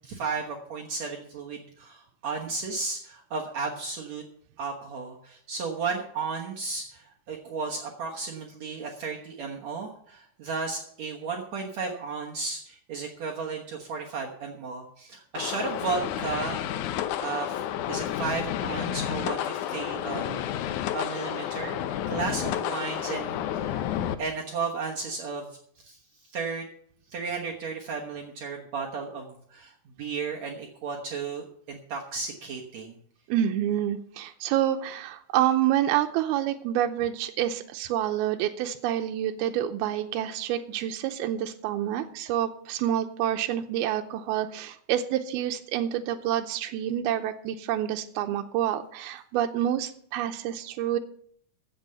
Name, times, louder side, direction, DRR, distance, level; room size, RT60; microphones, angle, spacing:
voice 1, 0.0-4.2 4.6-17.6 17.9-23.8 24.2-26.0 26.3-26.6 27.1-33.0, right 4 dB, 60° right, 0 dB, 2.1 m, -34 dB
sound 1, 15.3-24.1, left 11 dB, 75° left, 1.8 m, -31 dB
voice 2, 33.3-51.0, right 11 dB, 90° right, 6 dB, 2.6 m, -28 dB
15.0 x 7.0 x 6.8 m, 0.62 s
omnidirectional pair, 4.3 m